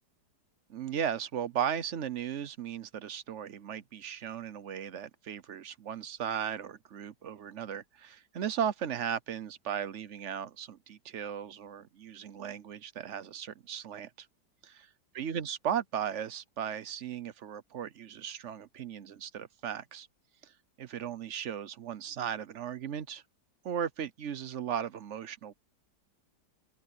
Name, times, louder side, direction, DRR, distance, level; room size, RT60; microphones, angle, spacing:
voice 1, 0.7-14.3 14.6-14.9 15.1-20.1 20.4-23.2 23.6-25.5, right 8 dB, 55° right, 0.9 m, -36 dB
open air
omnidirectional pair, 1.8 m